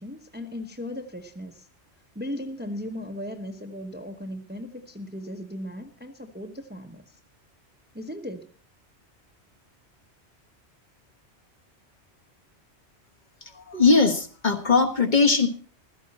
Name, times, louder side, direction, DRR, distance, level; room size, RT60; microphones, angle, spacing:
voice 1, 0.0-1.7 2.1-7.2 7.9-8.5, left 1 dB, 10° right, 5 dB, 0.9 m, -37 dB
voice 2, 13.4-15.5, left 4 dB, 45° left, 5 dB, 1.5 m, -20 dB
16.0 x 13.0 x 4.2 m, 0.42 s
omnidirectional pair, 1.1 m